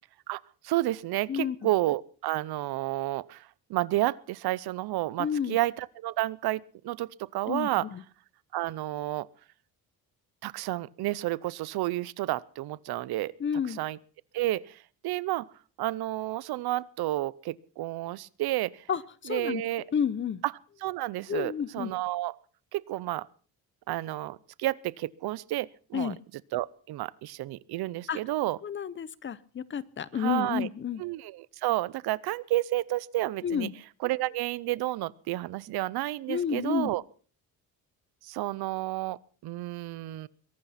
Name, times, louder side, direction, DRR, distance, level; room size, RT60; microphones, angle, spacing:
voice 1, 0.3-7.8 8.5-9.3 10.4-13.3 13.8-14.0 14.3-15.5 15.8-18.9 19.3-19.8 20.8-22.3 22.7-23.3 23.9-26.1 26.5-28.6 30.2-30.7 31.0-33.7 34.0-37.0 38.2-40.3, right 16 dB, 80° right, 21 dB, 0.7 m, -31 dB
voice 2, 1.3-1.7 5.2-5.6 7.5-8.0 13.4-13.8 18.9-19.6 19.9-20.4 21.3-21.9 25.9-26.2 28.1-28.2 28.6-31.0 33.4-33.7 36.3-36.9, left 8 dB, 30° left, 19 dB, 0.6 m, -31 dB
22.5 x 12.0 x 4.2 m, 0.40 s
cardioid pair, 135°, 38 cm